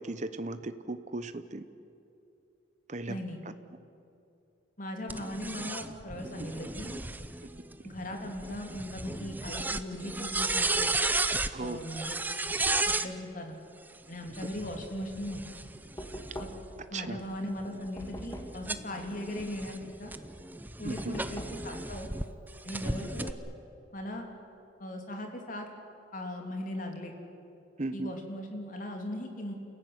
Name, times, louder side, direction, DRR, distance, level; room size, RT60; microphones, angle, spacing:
voice 1, 0.0-1.6 2.9-3.2 11.5-11.8 16.9-17.2 20.8-21.2 27.8-28.1, right 2 dB, 40° right, 11 dB, 0.9 m, -36 dB
voice 2, 3.1-3.4 4.8-7.0 7.8-10.9 11.6-12.2 13.0-13.5 14.1-15.4 16.4-16.5 16.9-20.1 20.8-22.1 22.6-23.4 23.9-24.2 24.8-25.7 26.1-27.1 27.9-29.5, left 1 dB, 45° left, 3 dB, 3.1 m, -38 dB
sound 1, 5.1-13.1 14.2-16.6 17.2-22.2 22.7-23.3, right 2 dB, 10° right, 0.7 m, -34 dB
Knock, 16.0-16.8 18.0-18.7 21.0-21.7, equal, 15° left, 2.0 m, -42 dB
29.0 x 15.0 x 9.6 m, 2.8 s
head